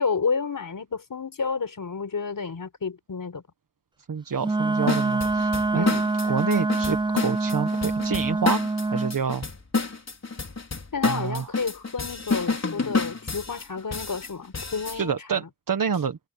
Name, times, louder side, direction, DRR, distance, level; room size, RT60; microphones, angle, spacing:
voice 1, 0.0-3.4 5.7-6.1 10.9-15.2 15.4-15.5, left 5 dB, 80° left, 4.6 m, -30 dB
voice 2, 4.1-5.9 6.3-9.4 11.0-11.5 14.9-16.2, right 6 dB, 80° right, 1.4 m, -28 dB
Wind instrument woodwind instrument, 4.4-9.2, right 3 dB, 15° right, 0.5 m, -25 dB
sound 1, 4.9-15.0, left 4 dB, 50° left, 4.0 m, -29 dB
wide cardioid pair, 65°, 33 cm